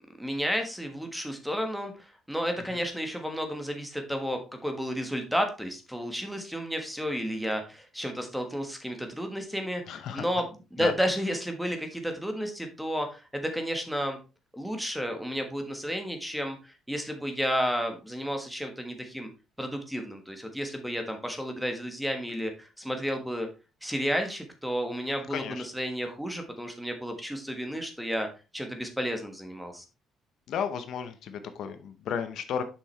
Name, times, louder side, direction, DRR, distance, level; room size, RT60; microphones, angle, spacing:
voice 1, 0.2-14.2 14.5-19.3 19.6-23.5 23.8-28.3 28.5-29.8, equal, ahead, 5 dB, 1.4 m, -32 dB
voice 2, 9.9-10.2 10.8-10.9 25.3-25.6 30.5-32.6, left 8 dB, 65° left, 9 dB, 0.8 m, -33 dB
7.2 x 5.7 x 3.3 m, 0.31 s
cardioid pair, 140°, 0 cm